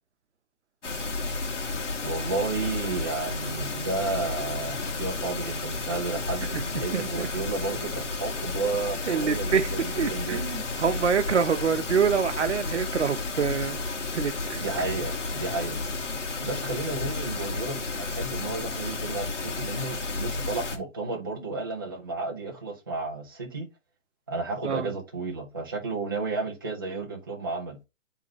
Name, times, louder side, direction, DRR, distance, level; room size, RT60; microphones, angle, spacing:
sound 1, 0.8-20.8, left 3 dB, 65° left, 1.8 m, -32 dB
voice 1, 2.0-10.4 14.5-15.8 16.4-23.7 24.3-27.8, right 3 dB, 20° right, 0.7 m, -32 dB
voice 2, 6.9-7.3 9.1-9.7 10.0-13.8 14.1-14.6 24.6-24.9, right 6 dB, 60° right, 1.0 m, -26 dB
9.0 x 3.7 x 3.0 m
hypercardioid pair, 175°, 38 cm